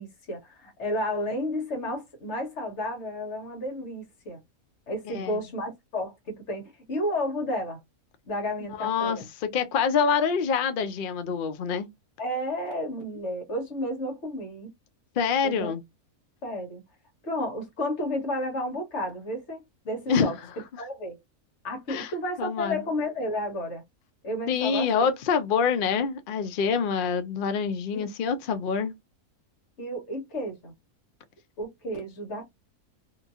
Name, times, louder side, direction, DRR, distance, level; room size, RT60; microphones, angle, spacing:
voice 1, 0.0-4.4 4.9-6.6 6.9-7.8 8.3-9.3 12.2-14.7 15.4-15.7 16.4-16.8 17.2-20.3 20.8-21.2 21.6-23.8 24.2-25.1 27.9-28.0 29.8-30.7 31.6-32.6, left 1 dB, 50° left, 1.4 m, -32 dB
voice 2, 8.8-11.9 15.2-15.8 20.1-20.3 21.9-22.1 22.4-22.8 24.5-28.9, left 6 dB, 70° left, 0.5 m, -26 dB
3.0 x 2.6 x 2.3 m
omnidirectional pair, 1.5 m